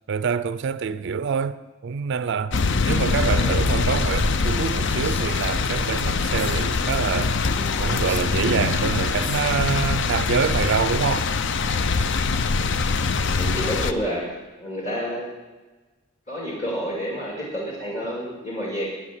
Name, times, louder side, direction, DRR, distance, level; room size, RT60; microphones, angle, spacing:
voice 1, 0.1-7.4 7.8-11.3, right 6 dB, 55° right, 0.4 m, -26 dB
sound 1, 2.5-13.9, left 4 dB, 60° left, 0.5 m, -23 dB
voice 2, 3.4-3.7 13.3-14.3 14.6-15.3 16.3-18.9, equal, 35° left, 2.2 m, -29 dB
Female speech woman speaking, 4.2-6.7 7.0-7.1 7.4-9.4, equal, 10° left, 0.7 m, -41 dB
9.7 x 8.2 x 9.3 m
head